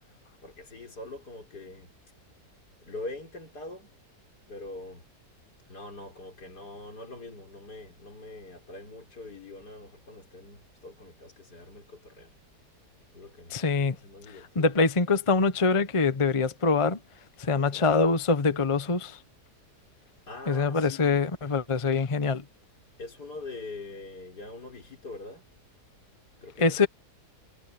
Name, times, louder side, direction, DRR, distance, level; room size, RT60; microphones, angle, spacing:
voice 1, 0.4-1.9 2.8-3.9 4.5-5.1 5.7-12.3 13.1-14.8 17.5-17.9 20.3-21.1 23.0-25.5 26.4-26.9, left 2 dB, 75° left, 5.2 m, -43 dB
voice 2, 13.5-14.0 14.3-17.0 17.4-19.2 20.5-22.4 26.6-26.9, left 4 dB, 25° left, 0.8 m, -24 dB
omnidirectional pair, 1.7 m